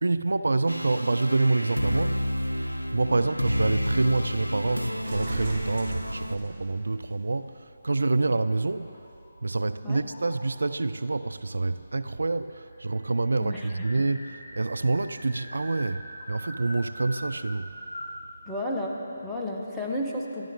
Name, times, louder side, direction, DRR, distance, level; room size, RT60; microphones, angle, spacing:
voice 1, 0.0-2.2 2.9-9.0 9.4-17.7, right 3 dB, 65° right, 0.4 m, -27 dB
sound 1, 0.7-6.4, equal, 90° left, 0.5 m, -30 dB
sound 2, 1.9-7.2 8.0-8.1, right 1 dB, 45° right, 3.0 m, -41 dB
sound 3, 8.6-9.6 10.1-10.7 11.7-11.8 12.1-12.2 12.5-18.2, equal, 40° left, 3.7 m, -43 dB
voice 2, 13.4-13.7 18.5-20.5, left 1 dB, 5° left, 1.2 m, -32 dB
24.0 x 12.5 x 3.7 m
figure-of-eight pair, 150°, 0 cm